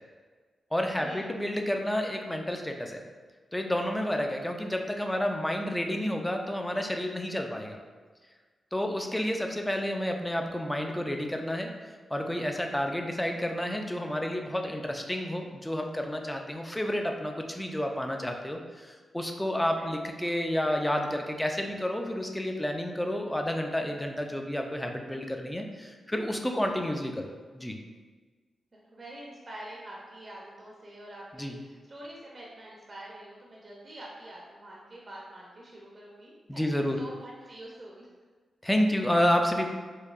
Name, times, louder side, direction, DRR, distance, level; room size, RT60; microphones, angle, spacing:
voice 1, 0.7-3.0 3.5-7.8 8.7-11.7 12.1-27.8 31.4-31.6 36.5-37.0 38.6-39.7, left 1 dB, 10° left, 3 dB, 0.4 m, -30 dB
voice 2, 28.7-38.1, right 1 dB, 40° right, -4 dB, 0.6 m, -46 dB
4.5 x 2.6 x 2.4 m, 1.4 s
cardioid pair, 90°, 0 cm